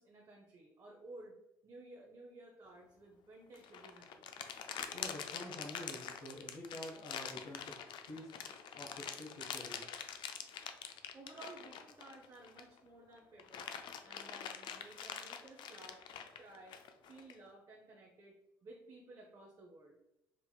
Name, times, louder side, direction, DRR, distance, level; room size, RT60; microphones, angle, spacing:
voice 1, 0.0-1.4 1.6-4.4 11.1-13.7 14.0-16.0 16.4-16.8 17.1-20.0, right 2 dB, 45° right, -1 dB, 0.7 m, -55 dB
sound 1, 3.5-12.8 13.2-17.3, left 8 dB, 65° left, 0.4 m, -45 dB
voice 2, 4.9-7.8 8.1-8.4 8.8-9.9, left 1 dB, 80° left, -6 dB, 0.9 m, -48 dB
4.4 x 2.8 x 2.2 m, 0.87 s
supercardioid pair, 60°, 9 cm